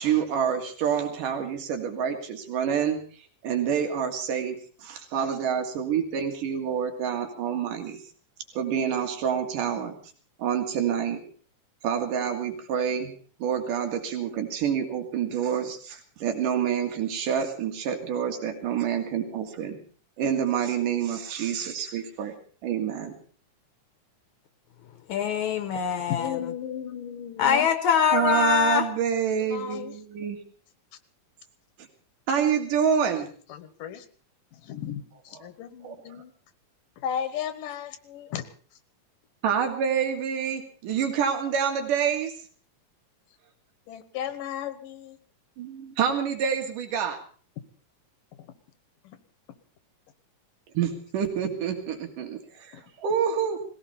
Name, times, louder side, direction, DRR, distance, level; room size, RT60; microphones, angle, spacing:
voice 1, 0.0-3.0 3.4-8.0 8.6-9.9 10.4-11.2 11.8-13.1 13.4-19.8 20.2-22.4 22.6-23.2 28.1-30.4 32.3-33.3 35.8-36.0 39.4-42.3 45.6-47.2 50.8-53.6, right 8 dB, 80° right, 3.6 m, -27 dB
voice 2, 25.1-26.4 27.4-28.9, left 8 dB, 75° left, 2.2 m, -23 dB
voice 3, 26.1-27.7 29.4-29.9 33.5-34.1 34.5-36.3 37.0-38.4 43.9-45.2 48.4-48.5 49.0-49.2 52.7-52.8, left 9 dB, 90° left, 2.8 m, -35 dB
20.5 x 16.5 x 4.2 m
omnidirectional pair, 3.7 m